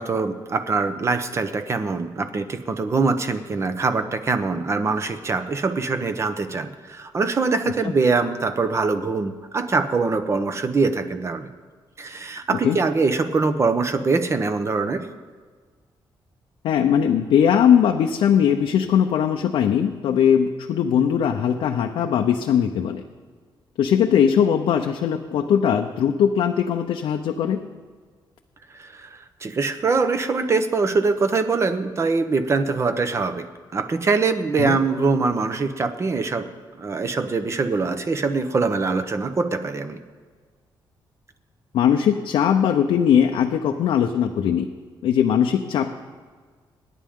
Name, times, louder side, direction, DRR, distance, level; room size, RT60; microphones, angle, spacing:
voice 1, 0.0-11.5 12.0-15.1 28.7-36.5 36.8-40.0, right 4 dB, 30° right, 9 dB, 1.0 m, -23 dB
voice 2, 16.6-23.0 23.8-27.6 34.6-34.8 41.7-44.7 45.0-45.9, left 8 dB, 90° left, 3 dB, 0.8 m, -20 dB
27.0 x 10.0 x 3.8 m, 1.5 s
cardioid pair, 140°, 9 cm